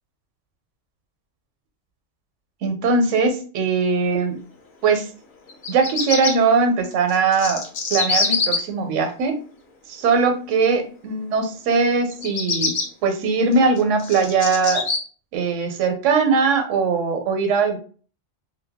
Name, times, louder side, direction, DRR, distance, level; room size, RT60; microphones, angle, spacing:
voice 1, 2.6-4.4 4.8-5.1 5.7-7.6 7.9-9.3 9.9-12.7 13.0-14.8 15.3-17.8, right 4 dB, 80° right, 6 dB, 0.9 m, -20 dB
Bird vocalization bird call bird song, 5.5-6.3 7.1-8.6 12.1-12.8 13.5-15.0, left 4 dB, 50° left, 0.7 m, -24 dB
2.2 x 2.1 x 3.4 m, 0.41 s
omnidirectional pair, 1.3 m